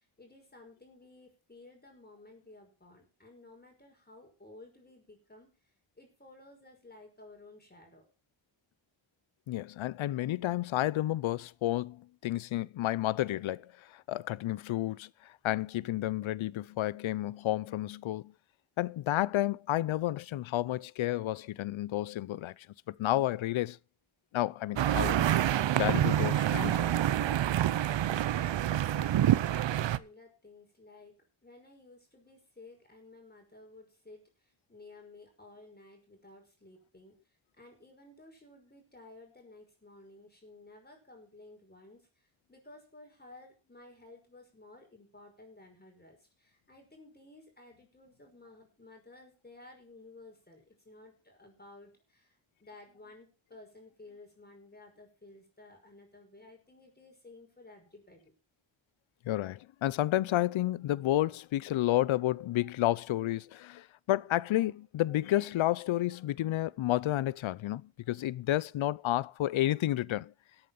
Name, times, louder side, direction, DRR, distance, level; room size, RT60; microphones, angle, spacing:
voice 1, 0.0-5.5 6.0-8.1 28.4-31.1 31.4-34.2 34.7-37.2 37.6-42.0 42.5-52.3 52.6-58.3, left 2 dB, 20° left, 5.6 m, -55 dB
voice 2, 9.5-13.7 13.9-15.1 15.4-18.3 18.8-22.5 22.9-23.8 24.3-25.2 25.7-26.9 59.3-70.3, left 14 dB, 90° left, 0.6 m, -31 dB
sound 1, 24.8-30.0, right 11 dB, 70° right, 0.7 m, -27 dB
13.5 x 8.9 x 5.6 m
cardioid pair, 85°, 46 cm